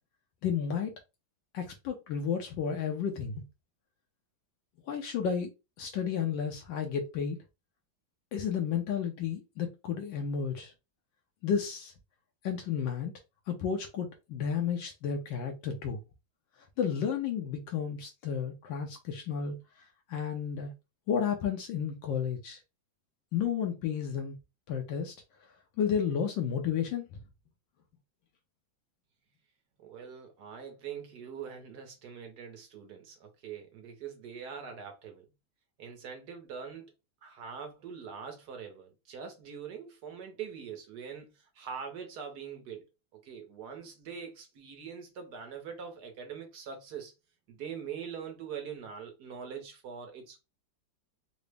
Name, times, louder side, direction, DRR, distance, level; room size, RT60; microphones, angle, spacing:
voice 1, 0.4-1.0 1.5-3.4 4.9-5.5 5.8-7.4 8.3-10.7 11.4-11.9 12.4-13.1 13.5-16.0 16.8-20.7 21.1-22.6 23.3-24.4 24.7-25.1 25.8-27.2, left 7 dB, 75° left, 1.3 m, -32 dB
voice 2, 29.8-35.3 35.8-36.9 37.2-42.8 43.1-47.1 47.5-50.4, right 7 dB, 65° right, 1.2 m, -43 dB
3.9 x 2.0 x 3.2 m
omnidirectional pair, 2.1 m